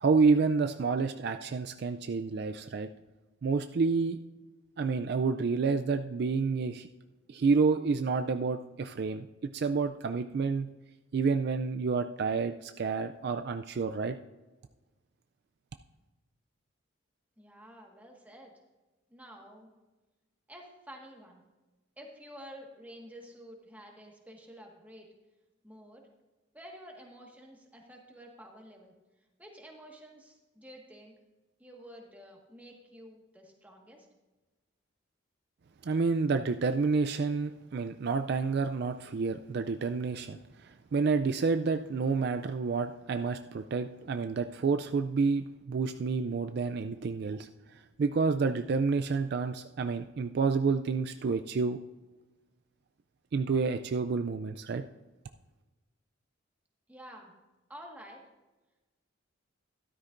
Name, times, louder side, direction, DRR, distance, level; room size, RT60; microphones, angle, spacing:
voice 1, 0.0-2.9 3.4-4.2 4.8-6.9 7.3-10.7 11.1-14.2 35.8-47.5 48.0-51.8 53.3-54.8, right 4 dB, 55° right, 8 dB, 0.3 m, -29 dB
voice 2, 17.4-18.5 19.1-19.7 20.5-21.4 22.0-25.1 25.6-26.1 26.5-28.9 29.4-31.1 31.6-34.1 56.9-57.3 57.7-58.2, equal, 10° right, 0 dB, 1.5 m, -50 dB
13.0 x 12.5 x 2.5 m, 1.2 s
head